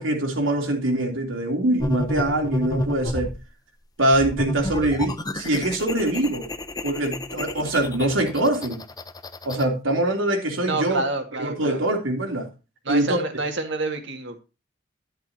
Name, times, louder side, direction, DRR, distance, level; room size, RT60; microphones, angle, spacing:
voice 1, 0.0-3.3 4.0-6.5 6.8-8.8 9.4-11.0 11.4-12.5 12.9-13.2, right 1 dB, 90° right, 2 dB, 3.2 m, -23 dB
sound 1, 1.8-3.4 4.1-9.7, left 1 dB, 20° left, 0.8 m, -31 dB
voice 2, 10.7-11.8 12.8-14.4, right 3 dB, 65° right, 5 dB, 2.1 m, -28 dB
11.0 x 10.5 x 2.9 m, 0.29 s
head